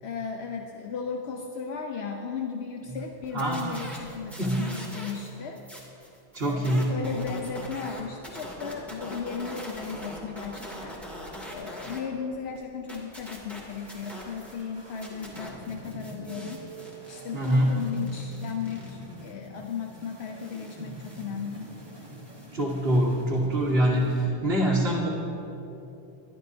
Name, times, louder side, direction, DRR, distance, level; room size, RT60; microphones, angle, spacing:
voice 1, 0.0-5.6 6.5-11.0 11.5-16.6 17.1-21.7, left 6 dB, 80° left, 3 dB, 1.0 m, -36 dB
sound 1, 3.2-5.3 5.5-12.0 12.3-14.6 14.9-22.5, equal, ahead, 2.3 m, -43 dB
voice 2, 3.3-3.8 4.4-4.8 6.3-7.0 17.3-17.8 22.5-25.1, right 1 dB, 70° right, -6 dB, 1.7 m, -24 dB
sound 2, 13.6-24.3, right 1 dB, 25° right, 1.6 m, -45 dB
23.0 x 11.5 x 2.7 m, 3.0 s
omnidirectional pair, 1.1 m